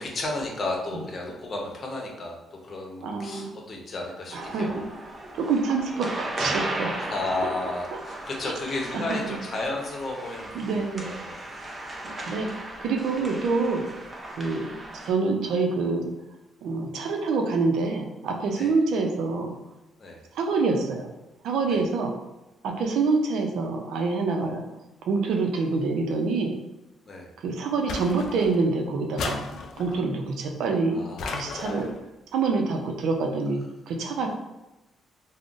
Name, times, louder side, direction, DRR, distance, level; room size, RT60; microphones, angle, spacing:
voice 1, 0.0-4.8 7.0-11.4 18.5-18.7 20.0-20.2 21.7-21.8 27.1-27.3 30.9-31.8, left 2 dB, 45° left, 0 dB, 0.7 m, -33 dB
voice 2, 3.0-3.4 4.3-4.8 5.4-6.9 8.9-9.4 10.5-11.1 12.0-12.5 12.8-13.8 14.4-16.0 16.6-19.5 20.3-21.1 21.4-22.1 22.6-24.6 25.1-26.6 27.4-31.0 31.3-31.9 32.3-33.6 33.9-34.3, right 4 dB, 80° right, 3 dB, 0.4 m, -26 dB
sound 1, 4.3-15.1, right 1 dB, 30° right, 0.5 m, -36 dB
sound 2, 27.9-28.7 29.2-30.1 31.2-32.0, left 3 dB, 70° left, 0.3 m, -34 dB
3.6 x 2.0 x 2.5 m, 0.97 s
cardioid pair, 90°, 0 cm